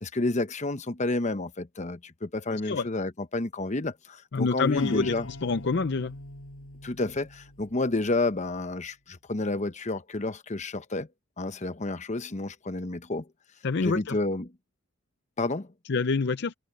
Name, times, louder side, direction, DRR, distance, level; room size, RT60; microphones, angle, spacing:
voice 1, 0.0-5.3 6.8-11.1 11.4-13.3 13.8-14.5 15.4-15.7, left 2 dB, 35° left, 0.9 m, -30 dB
voice 2, 2.5-2.9 4.3-6.1 13.6-14.2 15.9-16.5, left 4 dB, 55° left, 0.6 m, -27 dB
sound 1, 4.8-8.4, left 1 dB, 90° left, 6.5 m, -43 dB
head